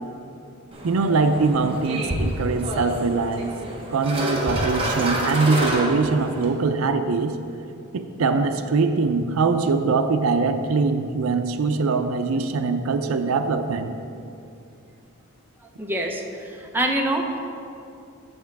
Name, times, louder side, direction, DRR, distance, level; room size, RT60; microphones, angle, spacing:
sound 1, 0.7-6.5, right 1 dB, 25° right, 1.1 m, -28 dB
voice 1, 0.8-3.5 3.9-7.4 7.9-14.0, right 4 dB, 85° right, 9 dB, 0.5 m, -22 dB
voice 2, 15.6-17.4, right 1 dB, 10° right, 1 dB, 0.7 m, -26 dB
8.0 x 7.1 x 4.6 m, 2.6 s
head